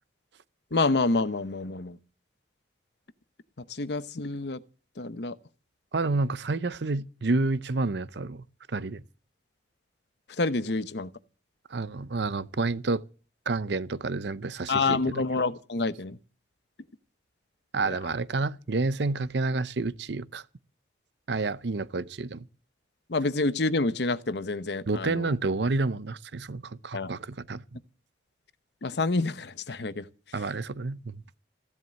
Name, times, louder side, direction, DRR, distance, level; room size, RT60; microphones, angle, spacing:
voice 1, 0.7-2.0 3.7-4.6 5.0-5.3 10.4-11.1 14.7-16.2 17.8-17.9 23.1-25.3 26.9-27.1 28.8-30.1, left 3 dB, 60° left, 0.9 m, -28 dB
voice 2, 5.9-9.0 11.7-13.0 13.5-15.2 17.7-20.4 21.3-22.4 24.9-27.6 30.3-31.2, right 3 dB, 65° right, 0.7 m, -29 dB
15.5 x 11.0 x 7.5 m
head